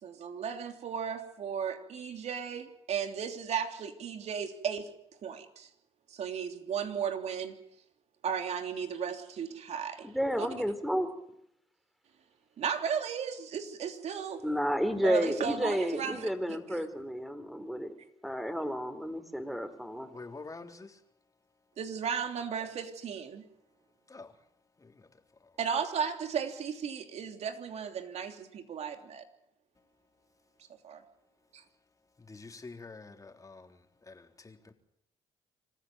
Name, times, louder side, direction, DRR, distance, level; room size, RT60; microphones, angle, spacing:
voice 1, 0.0-4.9 5.2-5.7 6.1-7.5 8.2-10.1 10.4-10.5 12.6-14.4 15.0-16.3 16.7-16.9 21.8-23.4 25.6-29.2 30.9-31.0 31.5-31.6, right 7 dB, 60° right, 3.2 m, -35 dB
voice 2, 10.0-11.1 14.4-17.9 18.2-20.1, equal, ahead, 4.1 m, -31 dB
voice 3, 20.1-21.0 24.1-24.3 24.8-25.1 25.4-25.5 32.2-34.7, left 3 dB, 25° left, 3.7 m, -47 dB
26.5 x 15.0 x 9.2 m
supercardioid pair, 60°, 12 cm